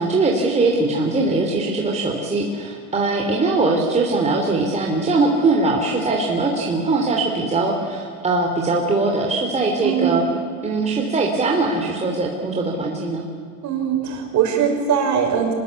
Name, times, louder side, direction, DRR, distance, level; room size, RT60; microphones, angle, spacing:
voice 1, 0.0-10.2 10.6-13.2, right 3 dB, 15° right, -1 dB, 3.3 m, -21 dB
voice 2, 9.8-10.3 13.6-15.5, right 7 dB, 40° right, 3 dB, 6.0 m, -21 dB
26.5 x 19.5 x 8.5 m, 2.1 s
supercardioid pair, 120°, 43 cm